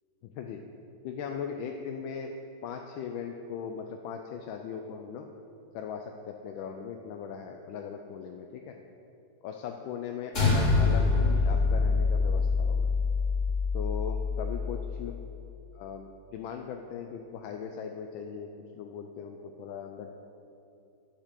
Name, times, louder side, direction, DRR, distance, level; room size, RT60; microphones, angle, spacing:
voice 1, 0.2-0.6 1.0-2.3 2.6-5.3 5.7-8.8 9.4-12.9 13.7-15.1 15.7-18.5 18.7-20.1, left 7 dB, 80° left, 4 dB, 1.3 m, -39 dB
sound 1, 10.3-14.9, left 4 dB, 40° left, 2.8 m, -25 dB
9.9 x 5.1 x 7.4 m, 2.9 s
omnidirectional pair, 2.2 m